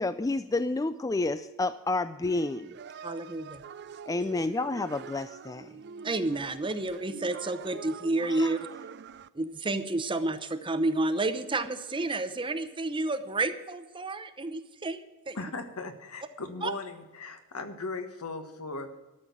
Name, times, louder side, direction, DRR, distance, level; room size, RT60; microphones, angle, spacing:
voice 1, 0.0-2.7 4.1-5.7 8.4-8.5, left 2 dB, 15° left, 12 dB, 0.3 m, -30 dB
sound 1, 2.2-9.3, right 6 dB, 50° right, 0.4 m, -45 dB
voice 2, 3.0-3.6 6.0-8.6 9.3-15.4 16.6-16.7, right 2 dB, 20° right, 9 dB, 0.8 m, -30 dB
voice 3, 15.3-19.0, left 3 dB, 85° left, 8 dB, 1.5 m, -38 dB
12.5 x 6.5 x 9.7 m, 1.1 s
head